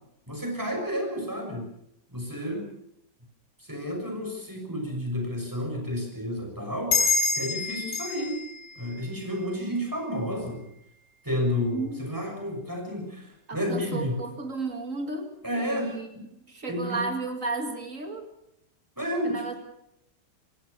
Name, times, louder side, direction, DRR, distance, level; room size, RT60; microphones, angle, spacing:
voice 1, 0.3-1.7 2.1-2.7 3.6-8.4 8.7-10.6 11.2-14.2 15.4-16.2 16.7-17.1 19.0-19.6, equal, 10° right, 2 dB, 6.5 m, -31 dB
sound 1, 6.9-10.0, left 3 dB, 45° left, 6.9 m, -28 dB
voice 2, 11.6-12.0 13.5-16.1 16.5-18.3 19.2-19.5, right 3 dB, 50° right, 6 dB, 2.6 m, -33 dB
28.0 x 17.0 x 6.8 m, 0.80 s
omnidirectional pair, 1.8 m